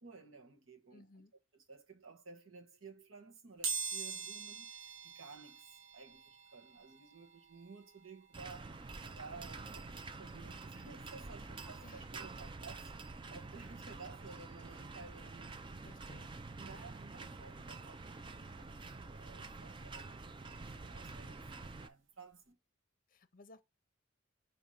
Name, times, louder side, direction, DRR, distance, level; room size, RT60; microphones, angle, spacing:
voice 1, 0.0-1.3 1.5-15.6 16.5-22.6, right 4 dB, 85° right, 1.3 m, -55 dB
voice 2, 0.9-1.3 11.8-12.0 15.8-16.4 23.1-23.6, left 3 dB, 45° left, 0.7 m, -59 dB
sound 1, 3.6-14.3 14.8-14.9 16.0-16.1 16.4-18.5 18.9-21.5 21.8-22.0 22.3-22.4, right 5 dB, 65° right, 0.9 m, -47 dB
sound 2, 8.3-21.9, right 3 dB, 25° right, 0.4 m, -48 dB
6.3 x 3.0 x 5.5 m
head